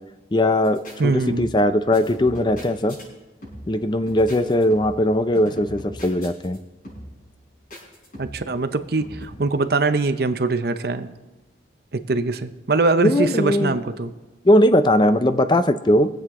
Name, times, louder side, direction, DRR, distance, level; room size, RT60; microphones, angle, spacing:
voice 1, 0.3-3.0 3.7-6.6 13.0-13.8 14.4-16.1, left 1 dB, 25° left, 11 dB, 0.5 m, -19 dB
sound 1, 0.6-1.0 1.3-1.7 1.9-3.0 3.4-3.8 4.1-5.1 5.3-6.6 6.8-7.2 7.7-8.5 9.0-9.3, equal, 45° left, 5.3 m, -39 dB
voice 2, 1.0-1.5 8.2-11.1 11.9-14.1, right 3 dB, 55° right, 10 dB, 0.7 m, -22 dB
23.0 x 7.8 x 3.7 m, 1.1 s
head